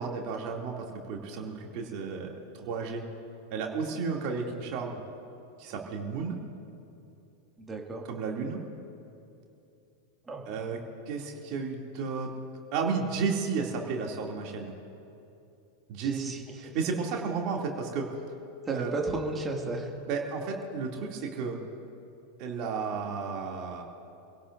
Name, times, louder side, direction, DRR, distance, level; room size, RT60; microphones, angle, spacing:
voice 1, 0.0-3.0 3.5-5.0 5.6-6.4 8.0-8.6 10.5-10.8 11.1-12.3 12.7-14.7 15.9-16.3 16.6-18.1 18.7-18.9 20.1-21.6 22.4-23.8, right 5 dB, 40° right, 0 dB, 2.6 m, -33 dB
voice 2, 7.6-8.0 10.2-10.5 16.0-16.7 18.7-19.9, right 3 dB, 15° right, 1 dB, 2.2 m, -34 dB
27.0 x 17.0 x 2.6 m, 2.7 s
figure-of-eight pair, 90°, 0 cm